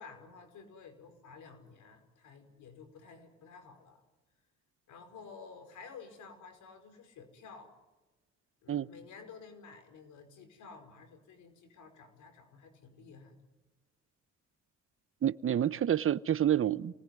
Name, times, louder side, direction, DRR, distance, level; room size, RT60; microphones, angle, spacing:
voice 1, 0.0-4.0 4.9-7.7 8.6-13.3, left 5 dB, 80° left, 5.2 m, -52 dB
voice 2, 15.2-16.9, right 10 dB, 45° right, 0.9 m, -28 dB
28.0 x 19.5 x 9.5 m
cardioid pair, 90°, 30 cm